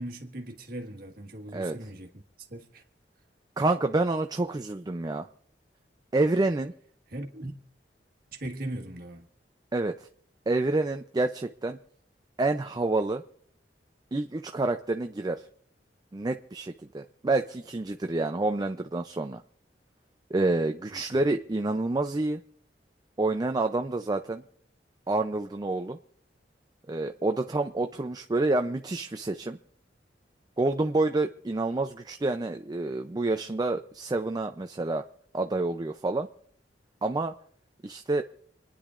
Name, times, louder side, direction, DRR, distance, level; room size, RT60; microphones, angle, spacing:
voice 1, 0.0-2.1 2.4-2.8 7.1-7.5 8.3-9.2 20.9-21.2, right 1 dB, 55° right, 1.6 m, -39 dB
voice 2, 3.6-5.3 6.1-6.7 9.7-10.0 10.5-11.8 12.4-13.2 14.1-15.4 16.1-19.4 20.3-22.4 23.2-24.4 25.1-26.0 26.9-29.6 30.6-35.0 35.3-36.3 37.0-37.3 37.8-38.2, right 2 dB, 25° right, 0.4 m, -28 dB
28.0 x 10.0 x 2.5 m
head